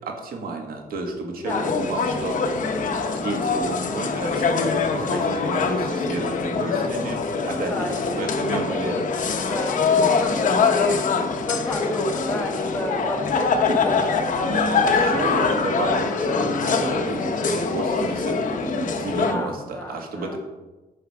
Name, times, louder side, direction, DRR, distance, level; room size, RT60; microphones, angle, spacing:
voice 1, 0.0-2.4 2.8-8.9 14.4-20.4, right 3 dB, 75° right, 2 dB, 1.6 m, -31 dB
voice 2, 1.3-1.7 7.7-11.0 11.4-14.2 19.3-20.4, left 2 dB, 15° left, -1 dB, 1.7 m, -31 dB
sound 1, 1.5-19.3, left 4 dB, 60° left, 0.9 m, -23 dB
10.0 x 5.9 x 4.8 m, 1.1 s
wide cardioid pair, 150°, 15 cm